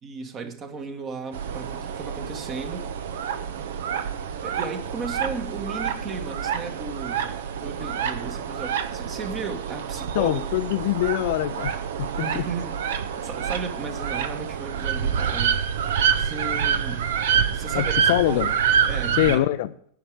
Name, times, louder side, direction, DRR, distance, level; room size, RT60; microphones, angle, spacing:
voice 1, 0.0-2.9 4.4-10.4 12.2-12.8 13.2-15.6 16.2-17.0 17.5-18.5 18.9-19.4, right 4 dB, 30° right, 1.8 m, -35 dB
sound 1, 1.3-19.4, right 7 dB, 55° right, 0.9 m, -27 dB
voice 2, 10.1-12.4 17.7-18.5 19.2-19.7, left 15 dB, 50° left, 0.5 m, -24 dB
10.5 x 5.9 x 8.8 m
figure-of-eight pair, 90°, 0 cm